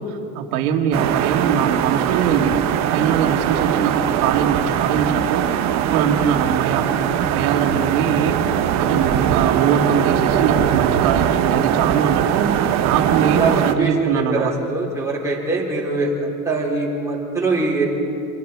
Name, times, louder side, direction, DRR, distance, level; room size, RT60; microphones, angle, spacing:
voice 1, 0.0-2.5 2.9-5.6 5.9-6.9 7.1-12.5 12.8-14.5, right 7 dB, 75° right, 4 dB, 2.1 m, -22 dB
sound 1, 0.9-13.7, right 10 dB, 40° right, 1.0 m, -20 dB
voice 2, 13.2-17.8, right 3 dB, 5° right, -5 dB, 4.0 m, -23 dB
27.5 x 21.5 x 4.7 m, 2.7 s
cardioid pair, 155°, 43 cm